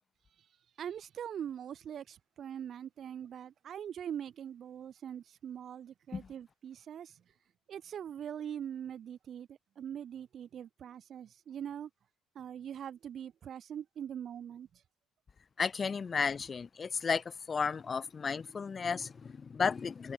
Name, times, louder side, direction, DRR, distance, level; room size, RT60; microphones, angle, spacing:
voice 1, 0.8-7.2 7.7-11.9 12.4-14.8, right 9 dB, 55° right, 1.9 m, -42 dB
voice 2, 15.6-20.1, left 5 dB, 40° left, 2.9 m, -33 dB
supercardioid pair, 75°, 0 cm